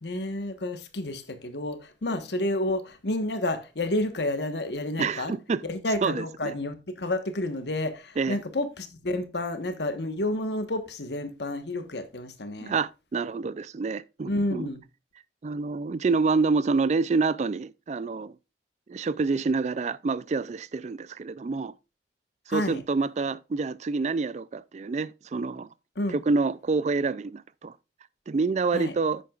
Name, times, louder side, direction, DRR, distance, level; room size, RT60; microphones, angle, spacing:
voice 1, 0.0-5.3 5.6-12.8 14.3-14.8 22.5-22.8 26.0-26.2 28.7-28.9, left 1 dB, 75° left, 1.3 m, -30 dB
voice 2, 5.0-5.6 6.0-6.5 8.2-8.4 12.6-14.7 15.4-18.3 18.9-21.7 22.5-25.7 26.1-27.7 28.3-29.2, right 4 dB, 40° right, 0.4 m, -27 dB
10.5 x 8.4 x 2.4 m
head